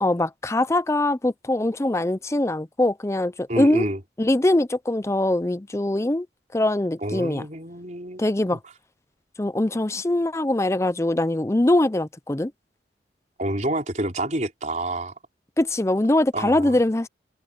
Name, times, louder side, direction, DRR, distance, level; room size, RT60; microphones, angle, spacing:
voice 1, 0.0-3.9 4.2-6.3 6.5-7.5 8.2-8.6 9.4-12.5 15.6-17.1, left 1 dB, 15° left, 0.5 m, -22 dB
voice 2, 3.5-4.0 7.0-8.2 13.4-15.1 16.3-16.7, right 1 dB, 40° right, 4.7 m, -28 dB
head